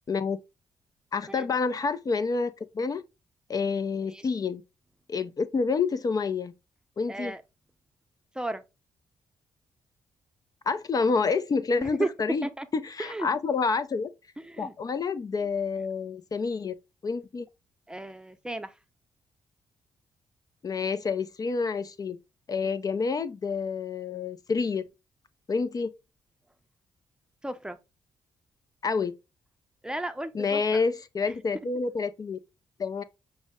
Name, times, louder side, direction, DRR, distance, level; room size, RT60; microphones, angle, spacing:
voice 1, 0.1-0.4 1.1-3.0 3.5-4.6 5.1-6.5 7.0-7.3 10.7-12.5 12.7-14.1 14.6-16.8 17.0-17.5 20.6-22.2 22.5-24.9 25.5-25.9 28.8-29.1 30.3-32.4 32.8-33.0, left 4 dB, 45° left, 0.5 m, -28 dB
voice 2, 7.1-7.4 8.3-8.6 11.8-12.1 12.4-12.7 13.0-13.3 14.4-14.7 17.9-18.7 27.4-27.8 29.8-30.8, right 2 dB, 10° right, 0.6 m, -34 dB
6.2 x 2.1 x 3.5 m
supercardioid pair, 60°, 9 cm